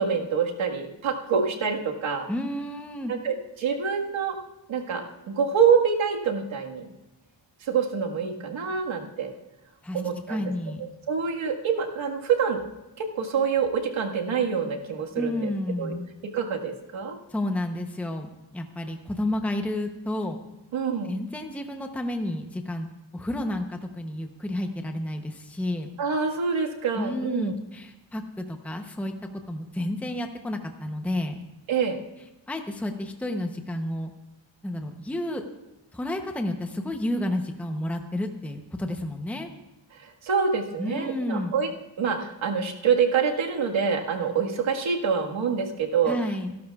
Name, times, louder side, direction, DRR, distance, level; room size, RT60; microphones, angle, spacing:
voice 1, 0.0-2.3 3.1-4.4 4.7-6.9 7.6-9.3 9.9-10.4 11.1-12.6 13.0-15.5 15.8-15.9 16.3-17.2 20.7-21.1 26.0-27.5 31.7-32.0 39.9-41.7 42.0-46.2, right 6 dB, 80° right, 1 dB, 1.8 m, -26 dB
voice 2, 2.3-3.1 9.8-10.0 10.3-10.8 15.2-16.1 17.3-20.4 21.0-22.9 23.1-25.9 26.9-31.4 32.5-34.1 34.6-35.4 35.9-39.5 40.8-41.6 46.1-46.6, left 1 dB, 5° left, 5 dB, 0.7 m, -31 dB
26.0 x 12.0 x 2.4 m, 0.99 s
wide cardioid pair, 170°, 46 cm